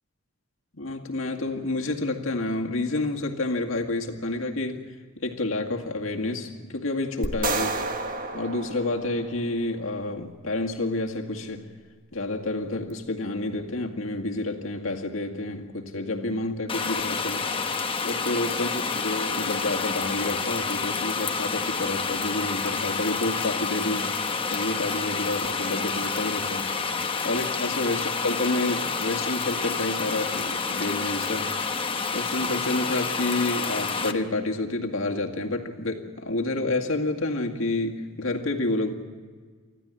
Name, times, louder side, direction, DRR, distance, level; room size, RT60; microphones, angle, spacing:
voice 1, 0.7-7.8 8.3-11.7 12.1-17.5 18.0-24.1 24.5-26.7 27.2-31.5 32.1-38.9, left 2 dB, 75° left, 2 dB, 2.1 m, -29 dB
sound 1, 7.2-9.6, right 3 dB, 40° right, 1.6 m, -30 dB
sound 2, 16.7-34.1, left 5 dB, 25° left, 1.0 m, -29 dB
25.0 x 15.0 x 9.9 m, 1.5 s
head